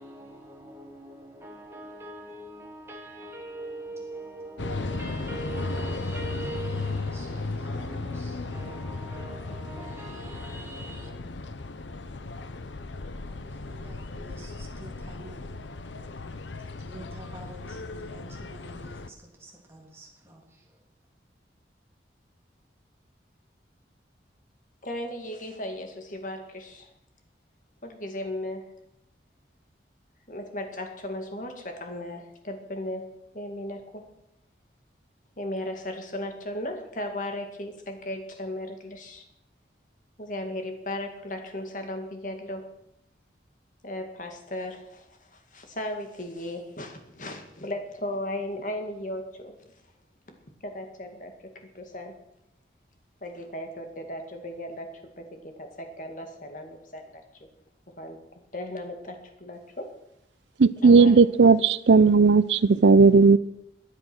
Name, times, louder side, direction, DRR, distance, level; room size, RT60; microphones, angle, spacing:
voice 1, 0.0-11.1 13.2-15.4 16.8-20.6, right 2 dB, 15° right, 3.0 m, -43 dB
sound 1, 4.6-19.1, left 3 dB, 90° left, 0.8 m, -35 dB
voice 2, 24.8-26.9 27.8-28.7 30.3-33.1 33.3-34.1 35.4-39.3 40.2-42.7 43.8-49.6 50.3-50.4 50.6-52.1 53.2-57.2 58.0-58.2 58.5-59.9 60.8-61.2, left 1 dB, 45° left, 2.2 m, -36 dB
voice 3, 60.6-63.4, right 4 dB, 80° right, 0.5 m, -16 dB
22.0 x 7.7 x 6.2 m
head